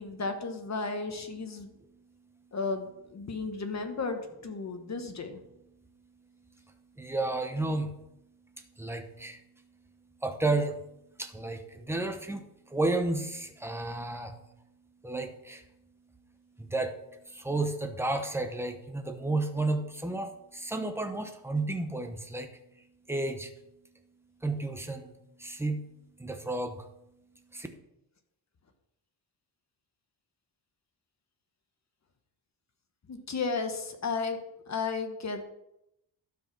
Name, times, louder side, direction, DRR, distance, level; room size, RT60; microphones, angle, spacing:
voice 1, 0.0-1.7 2.5-5.4 33.1-34.4 34.7-35.5, left 4 dB, 40° left, 6 dB, 1.2 m, -34 dB
voice 2, 1.8-2.5 4.6-4.9 5.7-8.2 8.4-9.9 10.2-10.9 11.1-14.5 15.0-15.7 16.6-23.5 24.4-25.8 26.2-26.9 27.5-27.7, right 2 dB, 5° right, 6 dB, 0.9 m, -33 dB
12.5 x 4.8 x 6.0 m, 0.83 s
wide cardioid pair, 135°, 42 cm